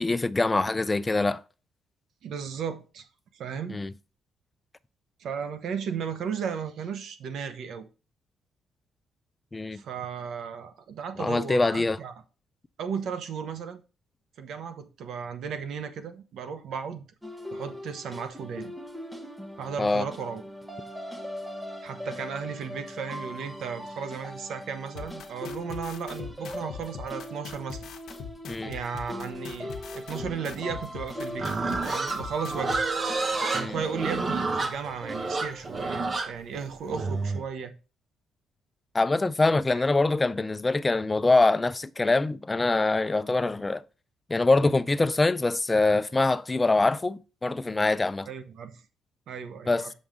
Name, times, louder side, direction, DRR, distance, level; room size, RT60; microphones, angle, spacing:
voice 1, 0.0-1.4 3.7-3.9 9.5-9.8 11.2-12.0 19.8-20.1 28.5-28.7 33.5-33.8 38.9-43.8 44.3-48.3 49.7-49.8, left 3 dB, 20° left, 0.4 m, -24 dB
voice 2, 2.2-3.1 3.3-3.8 5.2-7.9 9.7-12.1 12.8-13.8 14.4-17.0 17.5-18.7 19.6-20.4 21.8-27.9 28.6-32.8 33.5-37.7 48.3-48.8 49.3-49.9, right 6 dB, 70° right, 0.9 m, -35 dB
sound 1, 17.2-36.0, equal, 5° right, 1.1 m, -40 dB
sound 2, 25.0-32.8, left 7 dB, 70° left, 0.9 m, -40 dB
Livestock farm animals working animals, 31.4-37.4, right 3 dB, 35° right, 1.0 m, -29 dB
7.0 x 5.3 x 3.7 m
cardioid pair, 90°, 0 cm